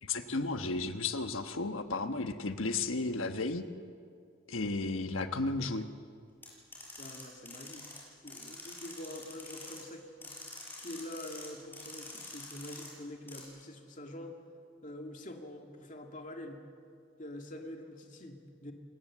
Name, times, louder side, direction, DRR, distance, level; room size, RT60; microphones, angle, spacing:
voice 1, 0.0-3.6 4.5-5.9, left 3 dB, 90° left, 8 dB, 1.3 m, -33 dB
sound 1, 6.4-8.0 8.3-9.8 10.2-11.5 11.7-12.9 13.3-13.4, left 2 dB, 10° left, 6.2 m, -46 dB
voice 2, 7.0-10.5 10.8-14.4 14.8-16.6 17.2-18.7, left 1 dB, 40° left, 3 dB, 2.3 m, -45 dB
28.5 x 18.5 x 7.5 m, 2.3 s
head